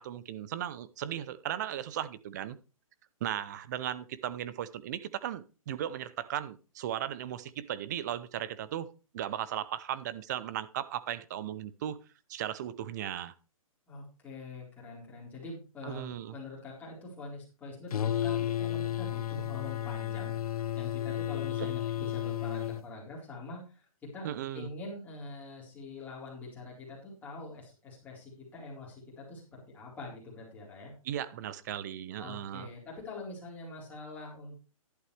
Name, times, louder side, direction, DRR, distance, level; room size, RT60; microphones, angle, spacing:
voice 1, 0.0-2.6 3.2-12.0 12.3-13.3 15.8-16.3 21.6-21.7 24.2-24.7 31.0-32.7, right 11 dB, 30° right, 0.6 m, -36 dB
voice 2, 13.9-20.4 20.7-23.9 24.1-30.9 32.2-34.6, left 3 dB, 10° left, 4.4 m, -44 dB
sound 1, 17.9-22.8, left 12 dB, 85° left, 0.5 m, -32 dB
11.5 x 11.0 x 3.4 m
hypercardioid pair, 165°, 18 cm